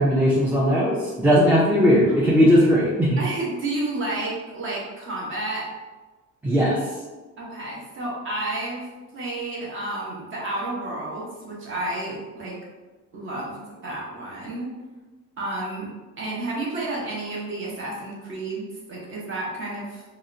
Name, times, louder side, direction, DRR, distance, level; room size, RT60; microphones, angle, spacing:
voice 1, 0.0-3.2 6.4-6.8, equal, 5° right, -8 dB, 0.3 m, -18 dB
voice 2, 3.2-5.7 7.4-12.6 13.1-14.7 15.4-15.9 16.2-20.0, right 2 dB, 40° right, -4 dB, 0.7 m, -31 dB
2.7 x 2.1 x 2.5 m, 1.2 s
cardioid pair, 135°, 31 cm